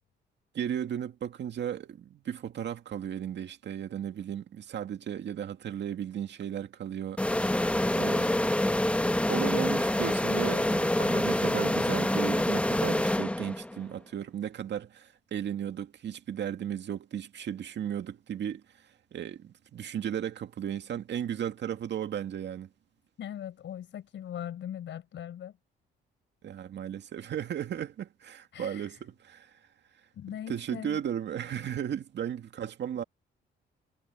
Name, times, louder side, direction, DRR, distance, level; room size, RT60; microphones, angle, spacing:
voice 1, 0.5-7.2 7.9-8.6 9.1-18.6 19.1-22.7 26.4-29.6 30.5-33.0, right 9 dB, 60° right, 2.2 m, -35 dB
sound 1, 7.2-13.8, left 1 dB, 5° left, 0.9 m, -26 dB
voice 2, 23.2-25.5 28.5-29.0 30.1-31.0, left 10 dB, 70° left, 6.0 m, -40 dB
cardioid pair, 90°, 20 cm